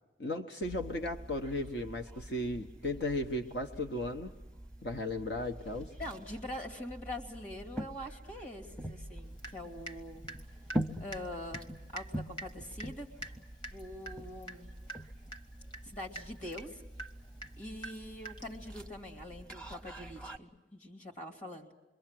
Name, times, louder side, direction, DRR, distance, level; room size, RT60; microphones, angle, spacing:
voice 1, 0.2-4.3 4.8-5.9, left 1 dB, 80° left, 3 dB, 1.0 m, -35 dB
sound 1, 0.6-20.4, right 1 dB, 5° left, 0.8 m, -45 dB
voice 2, 6.0-10.2 11.0-13.1 13.7-14.7 15.8-16.8 17.6-21.7, left 1 dB, 45° left, 3 dB, 2.7 m, -44 dB
Water tap faucet / Drip, 9.4-10.0 10.3-18.6, right 2 dB, 25° left, 1.2 m, -46 dB
26.5 x 23.0 x 7.6 m, 1.1 s
head